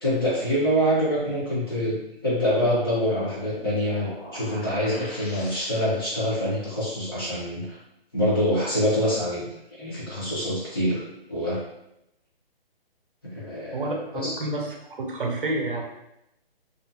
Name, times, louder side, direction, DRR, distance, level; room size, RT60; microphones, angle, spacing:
voice 1, 0.0-7.8 8.1-9.5 9.8-11.0 11.3-11.6 13.3-13.8 14.2-14.3, equal, 25° left, -9 dB, 0.7 m, -25 dB
sound 1, 2.6-6.1, left 1 dB, 85° left, 1.0 m, -43 dB
voice 2, 13.7-15.8, right 2 dB, 60° right, 0 dB, 0.6 m, -29 dB
2.4 x 2.3 x 2.6 m, 0.84 s
hypercardioid pair, 170°, 30 cm